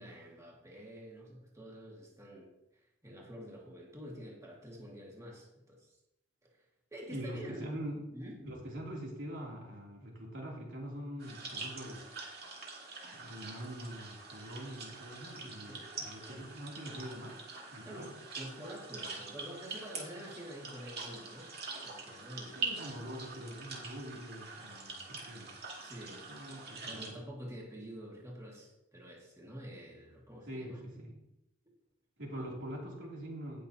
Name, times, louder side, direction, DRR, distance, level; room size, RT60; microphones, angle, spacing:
voice 1, 0.0-2.5 3.0-6.0 6.5-6.7 6.9-7.7 8.1-8.4 15.7-16.0 17.9-21.5 21.8-22.6 25.8-26.3 26.9-30.8 32.3-32.5, equal, 15° right, -3 dB, 2.0 m, -48 dB
voice 2, 7.1-8.0 8.4-12.1 13.1-17.4 17.7-18.1 22.5-25.6 26.3-27.1 30.5-31.1 32.2-33.7, equal, 75° right, -3 dB, 3.1 m, -44 dB
sound 1, 11.2-27.1, right 3 dB, 55° right, 2.4 m, -44 dB
18.5 x 6.2 x 2.9 m, 0.87 s
head